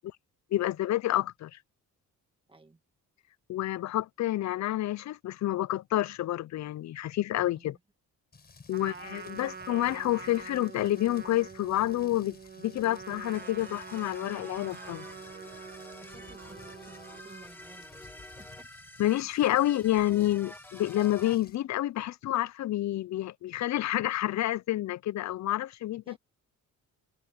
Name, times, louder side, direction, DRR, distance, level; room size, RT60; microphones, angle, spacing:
voice 1, 0.5-1.5 3.5-7.8 8.7-15.1 19.0-26.2, left 14 dB, 55° left, 0.4 m, -29 dB
voice 2, 2.5-2.8 7.5-7.8 8.7-9.1 16.0-18.7 26.0-26.2, right 3 dB, 15° right, 1.8 m, -56 dB
Rain, 8.3-21.6, left 5 dB, 30° left, 5.1 m, -56 dB
Trumpet, 8.7-17.5, right 6 dB, 30° right, 1.7 m, -45 dB
sound 1, 13.3-21.4, left 1 dB, 5° left, 1.8 m, -49 dB
wide cardioid pair, 155°, 33 cm